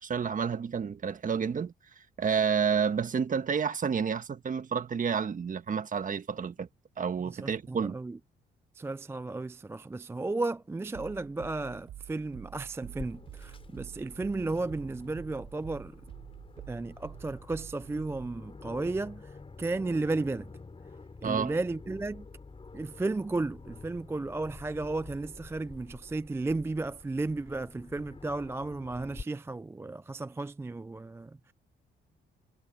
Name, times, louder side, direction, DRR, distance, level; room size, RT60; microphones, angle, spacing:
voice 1, 0.0-1.7 2.2-6.7 7.0-8.0 21.2-21.5, right 6 dB, 40° right, 1.5 m, -30 dB
voice 2, 7.4-8.2 8.8-16.0 16.7-19.3 19.6-20.5 21.2-22.3 22.7-31.5, right 3 dB, 10° right, 0.4 m, -34 dB
sound 1, 10.9-18.4, right 12 dB, 80° right, 4.9 m, -48 dB
Aircraft, 12.8-29.2, left 4 dB, 25° left, 5.1 m, -49 dB
cardioid pair, 90°, 20 cm